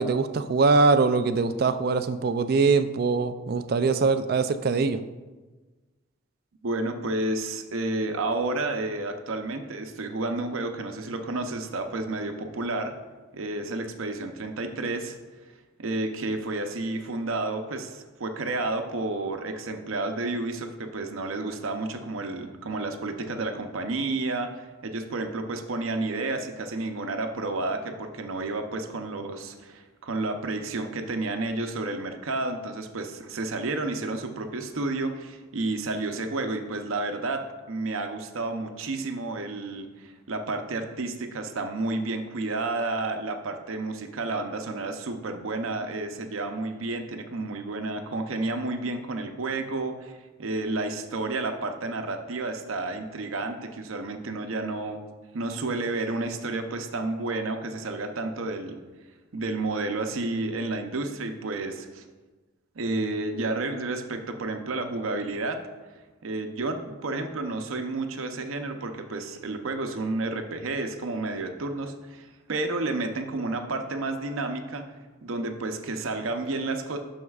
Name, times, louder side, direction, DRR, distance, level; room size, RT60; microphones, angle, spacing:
voice 1, 0.0-5.0, right 4 dB, 45° right, 11 dB, 0.3 m, -22 dB
voice 2, 6.6-13.0 13.3-15.2 15.8-55.0 55.3-58.8 59.3-62.0 62.8-65.6 66.2-74.8 75.2-77.0, right 2 dB, 80° right, 6 dB, 0.7 m, -31 dB
9.4 x 6.3 x 2.4 m, 1.3 s
head